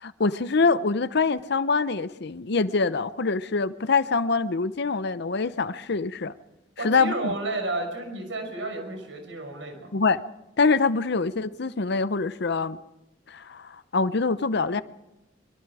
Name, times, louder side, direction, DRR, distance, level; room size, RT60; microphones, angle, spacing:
voice 1, 0.0-6.3 6.8-7.3 9.9-10.2 10.6-12.8 13.3-14.8, left 4 dB, 65° left, 14 dB, 0.8 m, -24 dB
voice 2, 6.8-9.9, right 2 dB, 85° right, 4 dB, 5.9 m, -32 dB
24.0 x 23.5 x 4.9 m, 0.95 s
head